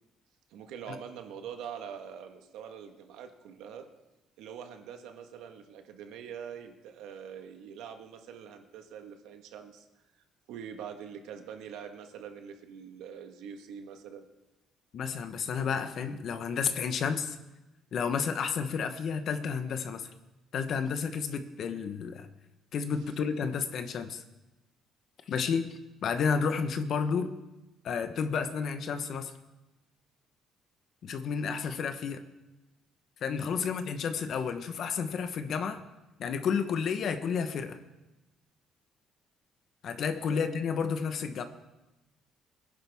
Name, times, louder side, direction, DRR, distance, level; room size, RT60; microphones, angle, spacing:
voice 1, 0.5-3.9 4.4-9.9 10.5-14.3 33.6-33.7 40.3-40.4, right 8 dB, 85° right, 5 dB, 1.4 m, -44 dB
voice 2, 14.9-17.4 17.9-20.1 20.5-22.3 22.7-24.2 25.3-27.3 27.8-29.3 31.0-32.2 33.2-35.8 36.2-37.8 39.8-41.4, left 6 dB, 50° left, 9 dB, 1.0 m, -31 dB
22.5 x 10.5 x 3.5 m, 1.0 s
cardioid pair, 145°, 0 cm